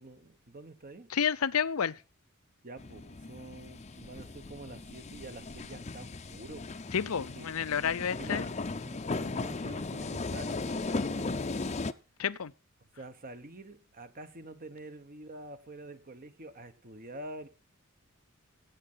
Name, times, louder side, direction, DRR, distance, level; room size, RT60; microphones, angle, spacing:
voice 1, 0.0-1.1 2.6-6.8 7.1-7.5 7.9-11.6 13.0-17.5, right 2 dB, 40° right, 1.3 m, -47 dB
voice 2, 1.1-2.0 6.9-8.5 12.2-12.5, left 7 dB, 80° left, 0.6 m, -30 dB
sound 1, 2.8-11.9, left 3 dB, 30° left, 0.6 m, -37 dB
16.5 x 7.7 x 5.6 m
head